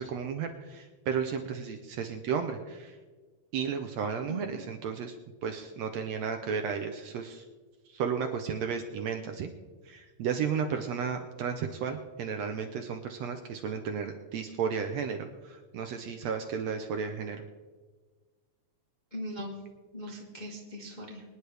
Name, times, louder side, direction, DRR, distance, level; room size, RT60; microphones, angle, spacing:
voice 1, 0.0-3.0 3.5-5.1 5.4-7.4 7.9-9.5 9.8-17.4, right 6 dB, 70° right, 5 dB, 1.7 m, -33 dB
voice 2, 4.3-4.6 19.1-19.5 19.9-21.2, equal, 25° left, -2 dB, 0.9 m, -40 dB
25.0 x 10.0 x 3.4 m, 1.4 s
omnidirectional pair, 3.6 m